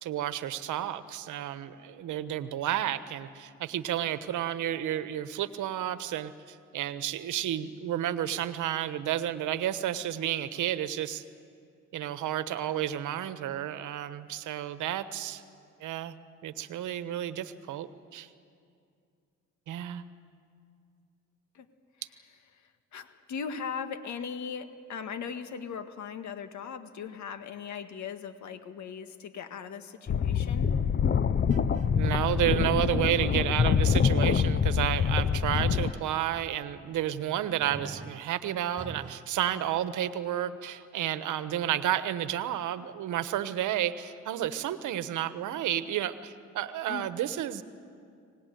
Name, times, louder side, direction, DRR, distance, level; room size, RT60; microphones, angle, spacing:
voice 1, 0.0-11.2 11.9-15.4 15.8-16.2 16.4-18.3 19.7-20.0 31.9-47.6, right 11 dB, 80° right, 12 dB, 1.2 m, -31 dB
voice 2, 22.9-30.7 46.9-47.1, left 6 dB, 70° left, 8 dB, 1.8 m, -39 dB
underwater ambience, 30.1-35.9, left 7 dB, 35° left, 0.7 m, -25 dB
sound 1, 31.5-32.0 35.5-36.1 37.6-38.3 38.8-39.3, right 5 dB, 25° right, 0.8 m, -42 dB
24.5 x 19.0 x 9.4 m, 2.3 s
cardioid pair, 90°, 30 cm